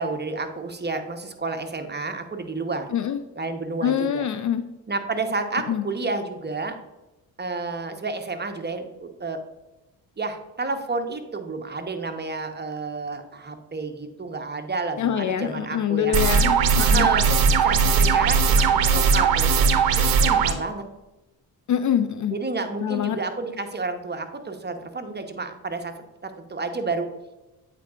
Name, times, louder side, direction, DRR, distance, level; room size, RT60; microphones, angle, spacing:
voice 1, 0.0-2.9 3.4-4.2 4.9-6.8 7.4-9.4 10.2-16.1 16.8-19.7 20.0-20.8 22.3-25.9 26.2-27.1, right 3 dB, 20° right, 6 dB, 0.9 m, -30 dB
voice 2, 3.8-4.6 5.7-5.9 15.0-17.1 21.7-22.4 22.8-23.2, left 9 dB, 40° left, 10 dB, 0.4 m, -24 dB
sound 1, 16.1-20.5, right 5 dB, 50° right, 0.8 m, -19 dB
8.3 x 4.8 x 2.4 m, 1.0 s
hypercardioid pair, 50°, 47 cm